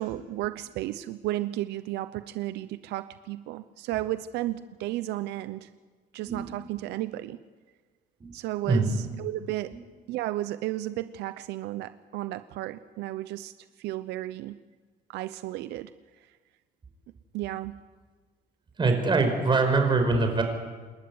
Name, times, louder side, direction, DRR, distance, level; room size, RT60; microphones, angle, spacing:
voice 1, 0.0-5.7 6.1-7.4 8.3-9.7 10.1-13.5 13.8-14.6 15.1-15.9 17.3-17.8, right 15 dB, 85° right, 12 dB, 0.7 m, -33 dB
voice 2, 6.2-6.6 8.2-8.3 8.7-9.1 18.8-20.4, right 3 dB, 30° right, 5 dB, 5.1 m, -24 dB
27.5 x 12.5 x 9.6 m, 1.4 s
cardioid pair, 110°, 17 cm